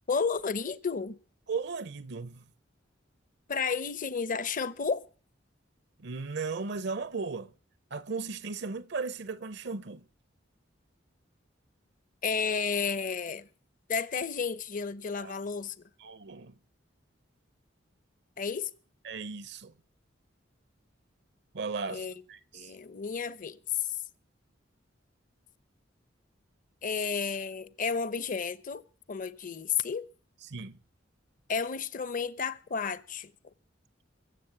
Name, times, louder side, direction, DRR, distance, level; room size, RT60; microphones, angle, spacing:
voice 1, 0.1-1.2 3.5-5.0 12.2-13.5 13.9-15.7 18.4-18.7 21.9-22.1 22.5-23.6 26.8-28.8 29.1-30.1 31.5-33.3, left 5 dB, 45° left, 0.8 m, -32 dB
voice 2, 1.5-2.5 6.0-7.5 7.9-10.0 15.1-15.3 16.0-16.5 19.0-19.7 21.5-22.7 30.5-30.8, right 4 dB, 65° right, 0.7 m, -36 dB
22.0 x 7.6 x 7.9 m
head